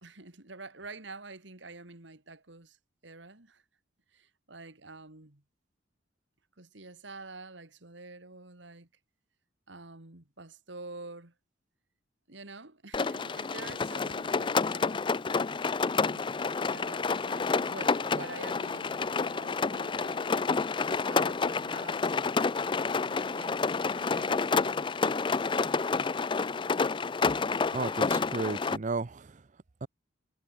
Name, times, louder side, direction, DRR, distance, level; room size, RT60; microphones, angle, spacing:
voice 1, 0.0-2.8 3.0-3.6 4.1-5.4 6.6-8.9 9.7-11.3 12.3-15.1 15.9-20.4 20.9-22.2 23.0-24.8, right 3 dB, 70° right, 2.6 m, -47 dB
Rain, 12.9-28.8, left 4 dB, 25° left, 0.4 m, -29 dB
voice 2, 27.7-29.3 29.8-29.9, right 3 dB, 40° right, 0.6 m, -33 dB
head